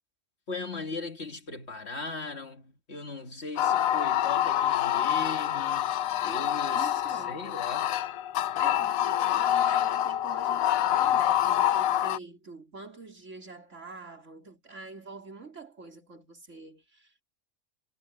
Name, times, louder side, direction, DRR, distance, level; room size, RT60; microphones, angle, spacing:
voice 1, 0.5-5.9 6.2-7.9, left 3 dB, 50° left, 2.1 m, -38 dB
sound 1, 3.6-12.2, left 11 dB, 75° left, 1.0 m, -26 dB
voice 2, 6.7-7.5 8.6-17.2, right 3 dB, 60° right, 4.0 m, -45 dB
omnidirectional pair, 1.5 m